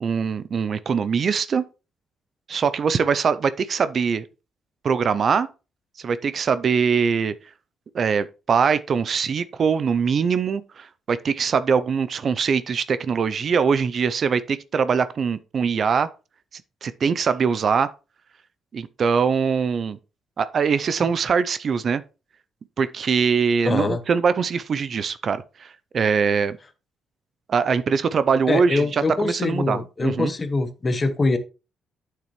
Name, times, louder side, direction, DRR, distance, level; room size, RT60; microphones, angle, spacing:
voice 1, 0.0-1.7 2.5-4.3 4.8-5.5 6.0-7.3 7.9-16.1 16.8-17.9 18.7-20.0 20.4-22.0 22.8-26.6 27.5-30.3, right 6 dB, 50° right, 0.5 m, -22 dB
voice 2, 23.6-24.0 28.5-31.4, left 3 dB, 30° left, 1.1 m, -23 dB
8.6 x 6.6 x 3.1 m
cardioid pair, 90°, 0 cm